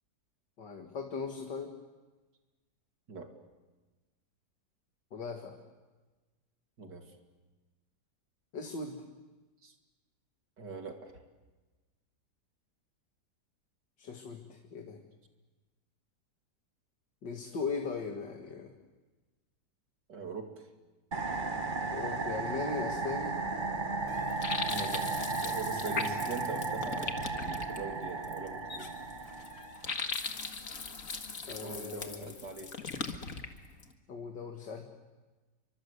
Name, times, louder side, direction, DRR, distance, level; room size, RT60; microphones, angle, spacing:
voice 1, 0.6-1.7 5.1-5.6 8.5-9.0 14.0-15.0 17.2-18.7 21.8-23.4 31.5-32.3 34.1-34.8, left 4 dB, 90° left, 3 dB, 2.7 m, -38 dB
voice 2, 6.8-7.2 9.6-9.7 10.6-11.2 20.1-20.7 24.6-25.1 25.4-28.9 31.6-32.7, right 4 dB, 80° right, 4 dB, 3.2 m, -42 dB
sound 1, 21.1-29.9, right 3 dB, 30° right, 1.5 m, -35 dB
Brass instrument, 23.1-29.8, left 2 dB, 60° right, 6.2 m, -53 dB
sound 2, 24.1-33.9, left 4 dB, 50° left, 2.2 m, -40 dB
29.5 x 24.5 x 8.2 m, 1.2 s
omnidirectional pair, 1.8 m